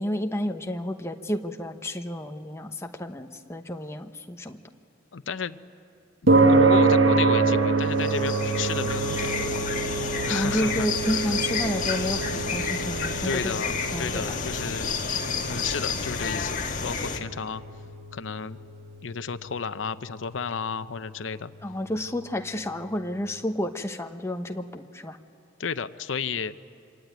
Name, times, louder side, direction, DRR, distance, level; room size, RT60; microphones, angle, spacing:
voice 1, 0.0-4.6 10.3-13.6 13.9-14.4 21.6-25.2, left 1 dB, 15° left, 4 dB, 1.1 m, -30 dB
voice 2, 5.1-5.6 6.2-9.6 10.2-11.4 13.2-14.9 15.5-17.6 18.1-18.6 19.0-21.5 25.6-26.6, left 5 dB, 90° left, 12 dB, 0.7 m, -32 dB
sound 1, 6.3-22.8, right 3 dB, 85° right, 1.4 m, -27 dB
sound 2, 7.8-17.2, left 5 dB, 45° left, 1.8 m, -30 dB
26.0 x 24.5 x 9.4 m, 2.4 s
head